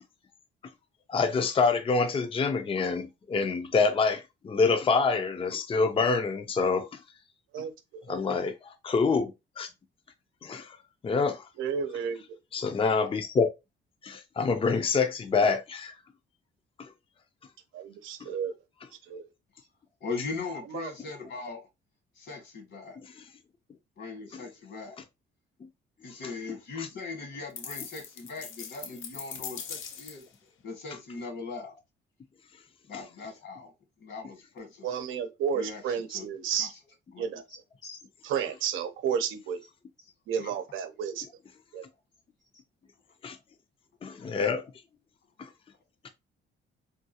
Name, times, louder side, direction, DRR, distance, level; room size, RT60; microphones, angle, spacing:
voice 1, 1.1-7.0 8.1-9.3 9.6-9.7 10.4-10.8 11.0-11.4 12.5-13.5 14.0-15.9 16.8-16.9 26.8-26.9 43.2-43.4 44.0-44.6, left 4 dB, 25° left, 0.5 m, -26 dB
voice 2, 11.6-12.2 17.7-18.5 19.1-19.3 20.7-20.9 34.8-36.7 37.2-37.4 38.2-39.6 40.3-41.2 41.7-41.8, right 7 dB, 85° right, 0.6 m, -31 dB
voice 3, 20.0-21.7 22.1-23.0 24.0-25.0 26.0-30.2 30.6-31.7 32.9-33.7 34.0-34.9 35.5-36.2 36.6-36.8 37.1-38.0 40.4-40.5, left 4 dB, 65° left, 1.7 m, -40 dB
sound 1, 27.6-30.3, left 7 dB, 85° left, 0.6 m, -41 dB
3.6 x 2.4 x 2.7 m
cardioid pair, 90°, 20 cm